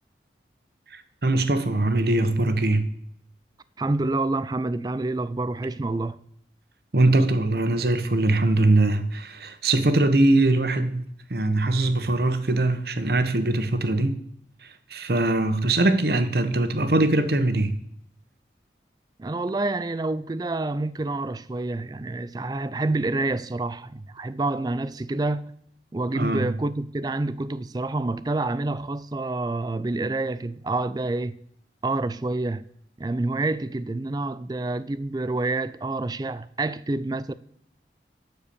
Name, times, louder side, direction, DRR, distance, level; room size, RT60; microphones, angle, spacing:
voice 1, 0.9-2.9 6.9-11.0 11.3-14.2 14.9-17.8 26.1-26.6, right 2 dB, 60° right, 1.0 m, -22 dB
voice 2, 3.8-6.2 19.2-25.4 25.9-31.4 31.8-32.6 33.0-37.3, right 2 dB, 20° right, 0.4 m, -28 dB
12.0 x 4.6 x 6.9 m
head